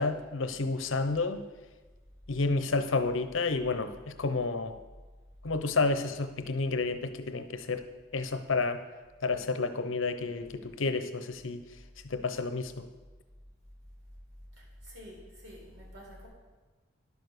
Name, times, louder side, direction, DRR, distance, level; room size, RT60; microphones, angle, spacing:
voice 1, 0.0-1.4 2.3-4.8 5.4-7.8 8.1-8.8 9.2-11.6 12.0-12.9, left 3 dB, 90° left, 10 dB, 0.8 m, -30 dB
voice 2, 14.9-16.3, equal, 85° right, -3 dB, 4.2 m, -48 dB
11.0 x 6.9 x 6.6 m, 1.3 s
head